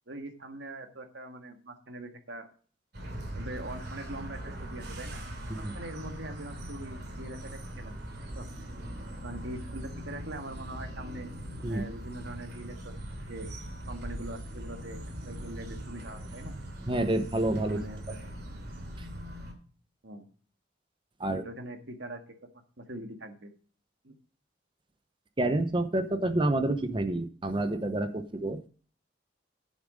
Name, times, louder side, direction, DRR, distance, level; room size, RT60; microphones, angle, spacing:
voice 1, 0.1-2.5 3.3-5.2 5.6-7.9 8.3-8.5 9.2-11.3 11.7-13.5 13.9-16.5 17.7-18.3 20.0-20.3 21.2-22.2 22.8-23.5 24.0-24.1, right 1 dB, 75° right, 5 dB, 1.8 m, -42 dB
sound 1, 2.9-19.5, right 1 dB, 55° right, 3.0 m, -41 dB
voice 2, 16.9-17.8 21.2-21.4 25.4-28.7, right 1 dB, 25° right, 10 dB, 0.8 m, -28 dB
11.0 x 7.3 x 5.0 m, 0.41 s
head